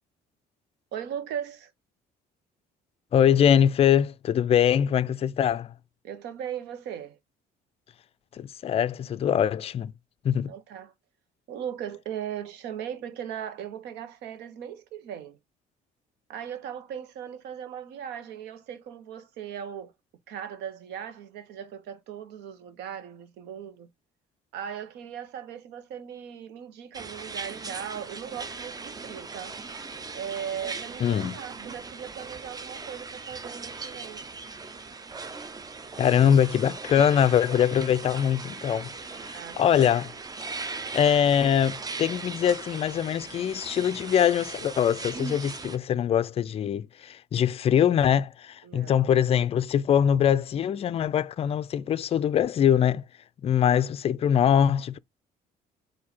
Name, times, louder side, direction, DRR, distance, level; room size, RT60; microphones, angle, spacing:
voice 1, 0.9-1.7 6.0-7.2 10.5-10.9 11.5-15.4 16.3-19.9 20.3-23.9 24.5-29.5 30.1-34.2 39.3-39.9 48.6-49.0, right 9 dB, 85° right, 1.0 m, -38 dB
voice 2, 3.1-5.7 8.3-9.9 10.2-10.5 31.0-31.4 36.0-40.1 40.9-53.0 53.4-55.0, left 9 dB, 35° left, 0.4 m, -23 dB
sound 1, 26.9-45.8, right 4 dB, 20° right, 0.6 m, -39 dB
4.3 x 2.7 x 4.1 m
cardioid pair, 110°, 17 cm